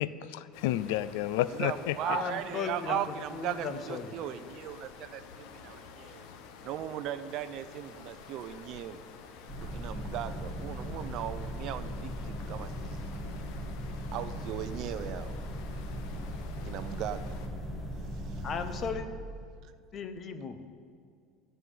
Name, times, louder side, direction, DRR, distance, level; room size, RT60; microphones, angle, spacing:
voice 1, 0.0-2.2, left 13 dB, 80° left, 16 dB, 0.4 m, -31 dB
sound 1, 0.5-17.5, left 6 dB, 65° left, 1.2 m, -50 dB
voice 2, 1.5-6.3 6.6-9.0 9.5-13.0 14.1-15.3 16.6-17.3, right 11 dB, 50° right, 12 dB, 0.6 m, -37 dB
voice 3, 2.0-3.0 3.3-4.2 18.4-19.1 19.9-20.7, left 5 dB, 30° left, 9 dB, 0.9 m, -36 dB
sound 2, 9.5-18.9, equal, 10° left, 2.4 m, -38 dB
16.5 x 5.6 x 9.4 m, 2.2 s
cardioid pair, 155°, 0 cm